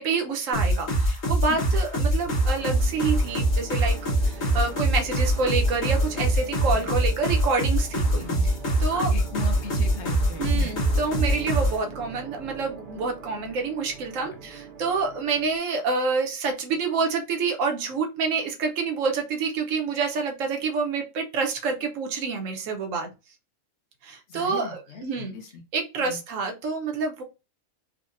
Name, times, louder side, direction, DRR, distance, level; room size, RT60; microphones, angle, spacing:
voice 1, 0.0-4.0 4.2-8.2 8.8-9.1 10.4-23.1 24.0-25.3 25.7-27.2, right 4 dB, 80° right, 3 dB, 1.1 m, -28 dB
sound 1, 0.5-11.8, right 1 dB, 80° left, 1.5 m, -23 dB
sound 2, 2.2-15.6, right 4 dB, 55° right, 0.6 m, -41 dB
voice 2, 6.6-6.9 8.1-8.5 8.9-10.8 13.3-13.5 14.1-14.4 19.9-20.0 24.3-25.6 26.0-26.2, left 4 dB, 65° left, 4 dB, 1.1 m, -39 dB
4.8 x 2.1 x 2.5 m, 0.28 s
omnidirectional pair, 1.3 m